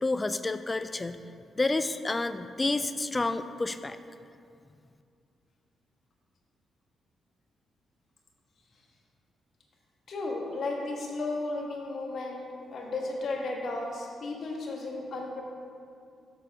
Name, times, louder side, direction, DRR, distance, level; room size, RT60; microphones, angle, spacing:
voice 1, 0.0-1.2 1.5-4.0, left 2 dB, 25° left, 11 dB, 0.4 m, -29 dB
voice 2, 10.1-12.4 12.7-15.4, left 2 dB, 60° left, 0 dB, 1.4 m, -34 dB
8.9 x 6.7 x 3.5 m, 2.4 s
supercardioid pair, 50°, 0 cm